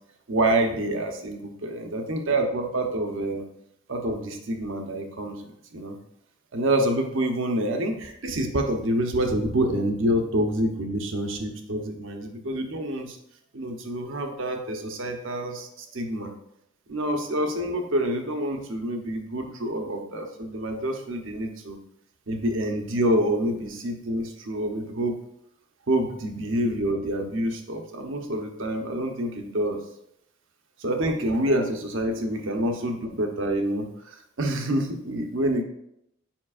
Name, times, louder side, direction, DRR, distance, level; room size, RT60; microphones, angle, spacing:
voice 1, 0.3-3.4 3.9-6.0 6.5-13.2 13.5-16.3 16.9-21.8 22.3-25.2 25.9-29.8 30.8-35.6, right 1 dB, 60° right, 4 dB, 0.8 m, -27 dB
7.3 x 5.2 x 2.4 m, 0.78 s
head